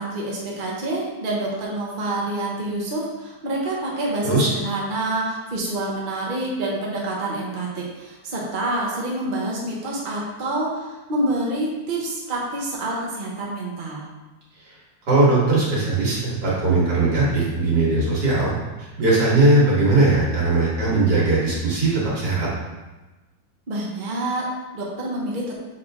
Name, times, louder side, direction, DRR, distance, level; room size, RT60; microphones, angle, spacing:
voice 1, 0.0-14.1 23.7-25.6, right 2 dB, 35° right, -3 dB, 1.1 m, -27 dB
voice 2, 15.1-18.5 18.8-22.5, right 2 dB, 90° right, -7 dB, 2.6 m, -19 dB
6.2 x 4.2 x 3.7 m, 1.2 s
omnidirectional pair, 1.7 m